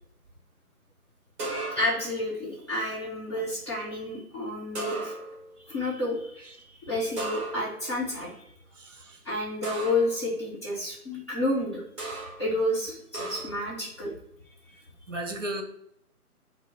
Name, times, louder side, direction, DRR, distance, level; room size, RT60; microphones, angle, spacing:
sound 1, 1.4-2.1 4.7-5.5 7.2-7.9 9.6-10.2 12.0-12.5 13.1-13.7, right 2 dB, 20° right, 1.4 m, -34 dB
voice 1, 1.7-5.1 5.6-8.5 9.2-11.8 12.4-14.1, left 1 dB, 20° left, -7 dB, 0.9 m, -30 dB
voice 2, 8.7-9.3 11.1-11.2 15.1-15.6, right 1 dB, 55° right, 5 dB, 0.8 m, -37 dB
5.0 x 2.1 x 4.0 m, 0.72 s
figure-of-eight pair, 155°, 45 cm